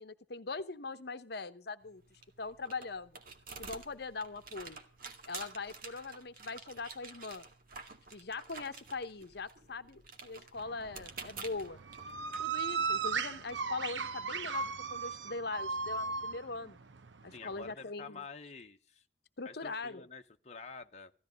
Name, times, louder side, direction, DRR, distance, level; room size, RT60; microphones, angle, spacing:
voice 1, 0.0-2.0 2.4-3.1 3.6-4.8 5.3-7.5 8.1-11.8 12.4-16.8 17.2-18.2 19.4-20.0, left 3 dB, 65° left, 0.9 m, -41 dB
sound 1, 1.8-13.5, right 4 dB, 55° right, 2.3 m, -50 dB
sound 2, 10.6-17.7, right 5 dB, 90° right, 0.9 m, -37 dB
voice 2, 17.3-19.0 19.4-21.1, left 4 dB, 40° left, 1.0 m, -48 dB
16.0 x 13.5 x 5.1 m
head